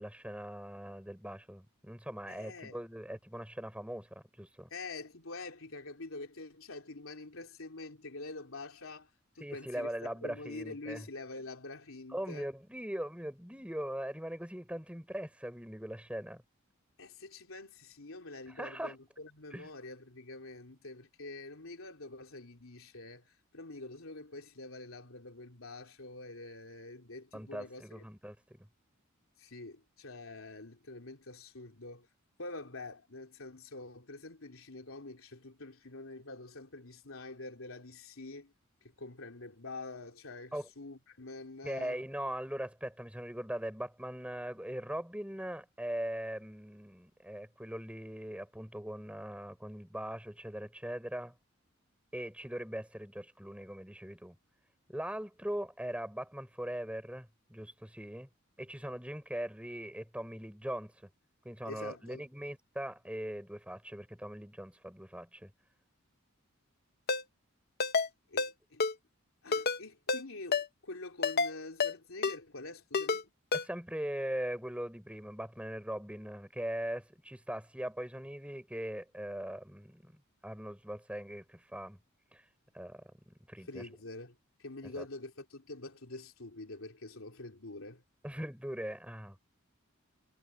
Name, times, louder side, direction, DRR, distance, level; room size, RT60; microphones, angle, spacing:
voice 1, 0.0-4.7 9.4-11.1 12.1-16.4 18.5-19.0 19.5-19.7 27.3-28.6 40.5-40.7 41.6-51.3 52.1-54.4 54.9-58.3 58.6-61.1 61.4-65.5 73.5-82.0 82.3-82.4 82.7-83.9 84.8-85.1 88.2-89.4, right 1 dB, 5° right, 5.7 m, -40 dB
voice 2, 2.3-2.8 4.7-9.1 9.3-12.5 17.0-28.0 29.4-32.1 32.4-38.5 39.0-42.0 61.6-62.2 68.0-68.8 69.4-73.3 83.7-88.0, left 2 dB, 75° left, 3.3 m, -46 dB
Ringtone, 67.1-67.2 67.8-68.1 68.4-68.5 68.8-68.9 69.5-69.8 70.1-70.2 70.5-70.7 71.2-71.5 71.8-71.9 72.2-72.4 72.9-73.2 73.5-73.6, left 4 dB, 50° left, 1.0 m, -29 dB
head